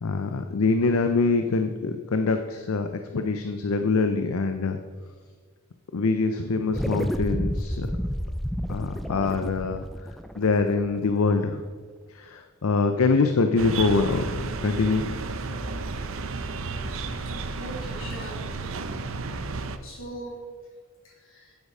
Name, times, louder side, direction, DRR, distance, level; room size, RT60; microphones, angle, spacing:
voice 1, 0.0-4.8 5.9-7.9 8.7-9.8 10.4-11.6 12.1-14.2 14.6-15.2, left 4 dB, 85° left, 7 dB, 0.6 m, -24 dB
sound 1, 6.7-11.4, equal, ahead, 0.3 m, -31 dB
sound 2, 13.6-19.8, right 3 dB, 70° right, 0.6 m, -32 dB
voice 2, 17.6-18.4 19.6-20.4 21.0-21.6, right 1 dB, 70° left, -3 dB, 3.3 m, -41 dB
8.7 x 8.2 x 4.9 m, 1.5 s
head